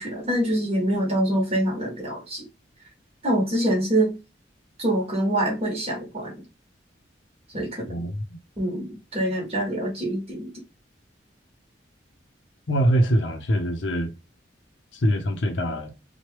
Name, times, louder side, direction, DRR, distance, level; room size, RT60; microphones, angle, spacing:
voice 1, 0.0-2.4 3.2-4.2 4.8-6.3 7.5-7.9 8.6-10.5, right 1 dB, 35° right, 1.2 m, -25 dB
voice 2, 7.9-8.2 12.7-14.1 15.0-15.9, equal, 75° left, 0.6 m, -23 dB
2.9 x 2.2 x 3.1 m
head